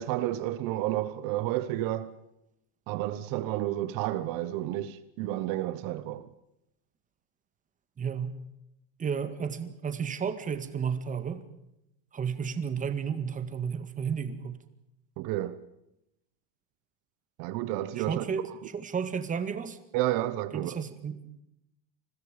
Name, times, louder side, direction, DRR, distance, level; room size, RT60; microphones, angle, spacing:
voice 1, 0.0-2.1 2.9-6.3 15.2-15.6 17.4-18.2 19.9-20.8, right 14 dB, 65° right, 1.3 m, -31 dB
voice 2, 8.0-8.4 9.0-11.4 12.1-14.6 18.0-19.8 20.5-21.2, right 6 dB, 20° right, 1.9 m, -32 dB
29.5 x 21.0 x 5.2 m
cardioid pair, 145°, 36 cm